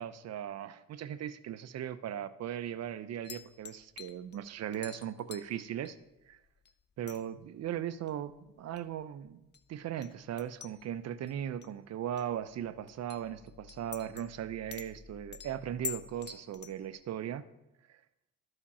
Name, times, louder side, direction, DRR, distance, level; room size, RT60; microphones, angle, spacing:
voice 1, 0.0-6.0 6.3-6.4 7.0-9.4 9.7-17.4 17.9-18.0, right 10 dB, 60° right, 13 dB, 0.6 m, -38 dB
sound 1, 3.2-6.7 7.0-17.0, left 7 dB, 35° left, 0.6 m, -48 dB
12.5 x 4.9 x 4.2 m, 0.92 s
cardioid pair, 90°, 30 cm